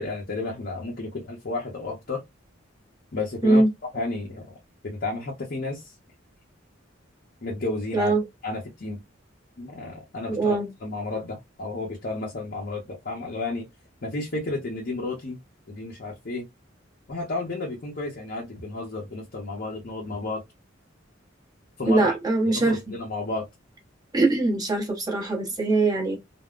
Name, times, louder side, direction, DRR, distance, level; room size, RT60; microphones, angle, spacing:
voice 1, 0.0-2.2 3.1-3.6 3.9-4.6 4.8-5.9 7.4-8.1 8.4-9.0 9.6-13.7 14.0-15.4 15.7-16.5 17.1-20.4 21.8-22.1 22.5-23.5, left 2 dB, 55° left, 0.7 m, -32 dB
voice 2, 7.9-8.2 10.3-10.7 21.9-22.8 24.1-26.2, right 2 dB, 20° right, 0.9 m, -22 dB
3.5 x 2.1 x 2.4 m
head